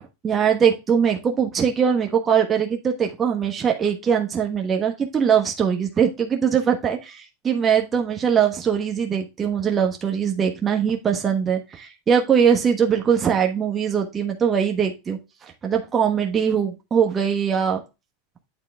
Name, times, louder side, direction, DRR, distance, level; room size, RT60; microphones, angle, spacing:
voice 1, 0.2-17.8, right 7 dB, 20° right, 2 dB, 1.2 m, -21 dB
9.0 x 3.7 x 3.5 m, 0.25 s
supercardioid pair, 130°, 0 cm